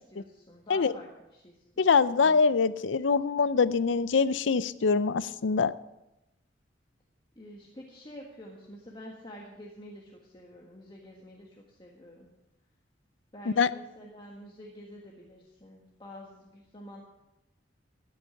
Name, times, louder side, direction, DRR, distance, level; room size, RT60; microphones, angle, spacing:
voice 1, 0.1-1.9 2.2-2.5 7.3-12.3 13.3-17.0, equal, 25° left, -1 dB, 1.5 m, -48 dB
voice 2, 1.8-5.7 13.6-13.7, left 5 dB, 80° left, 16 dB, 0.5 m, -24 dB
13.5 x 9.8 x 5.8 m, 0.94 s
head